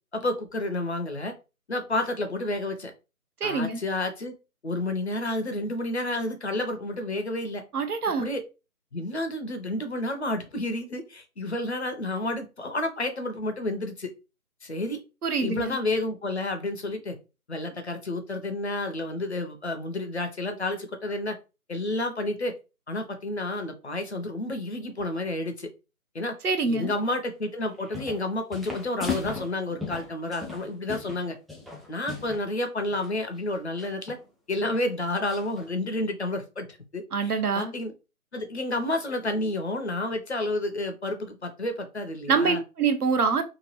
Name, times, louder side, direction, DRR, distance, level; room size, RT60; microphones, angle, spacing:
voice 1, 0.1-1.3 1.7-2.9 3.4-4.3 4.6-7.6 8.2-8.4 8.9-14.1 14.6-15.0 15.4-17.2 17.5-21.4 21.7-22.5 22.9-25.7 26.1-26.4 26.6-31.4 31.9-34.2 34.5-36.7 36.9-37.9 38.3-42.6, left 2 dB, 50° left, 6 dB, 0.6 m, -30 dB
voice 2, 3.4-3.8 7.7-8.2 15.2-15.8 26.4-26.9 37.1-37.7 42.3-43.4, right 5 dB, 80° right, 7 dB, 0.8 m, -25 dB
sound 1, 27.7-28.3 28.5-32.5 32.8-33.1 33.8-34.2 34.7-34.8 35.3-35.7, left 5 dB, ahead, 0.3 m, -37 dB
2.9 x 2.2 x 2.9 m, 0.29 s
figure-of-eight pair, 160°, 45 cm